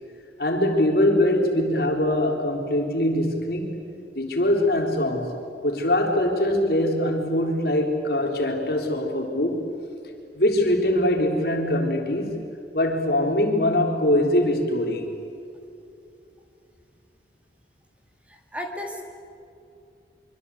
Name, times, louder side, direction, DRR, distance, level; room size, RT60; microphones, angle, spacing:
voice 1, 0.4-3.8 4.2-5.3 5.6-9.7 10.3-12.5 12.7-15.1, left 1 dB, 60° left, 2 dB, 3.8 m, -22 dB
voice 2, 18.3-19.0, left 1 dB, 5° right, 2 dB, 2.4 m, -34 dB
25.5 x 25.0 x 8.5 m, 2.5 s
head